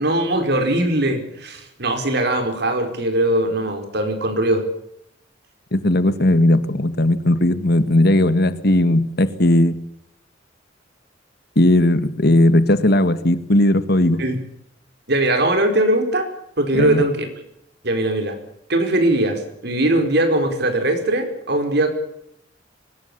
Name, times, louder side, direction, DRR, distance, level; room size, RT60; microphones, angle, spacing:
voice 1, 0.0-4.7 14.2-14.4 15.1-16.3 16.6-17.3 17.8-18.4 18.7-21.9, right 1 dB, 60° right, 6 dB, 4.7 m, -20 dB
voice 2, 5.7-9.7 11.6-14.2 16.7-17.0, left 1 dB, 60° left, 12 dB, 2.0 m, -17 dB
24.0 x 20.0 x 7.0 m, 0.77 s
head